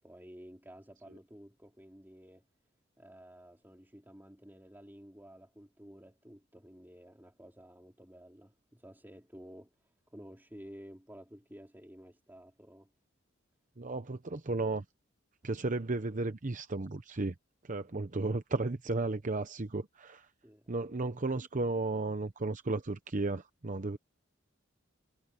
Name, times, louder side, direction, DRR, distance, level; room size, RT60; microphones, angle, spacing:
voice 1, 0.0-2.4 3.0-12.9 20.4-20.7, equal, 10° right, 3.3 m, -53 dB
voice 2, 13.8-14.8 15.4-17.3 17.6-20.3 20.7-24.0, right 2 dB, 40° right, 0.9 m, -34 dB
head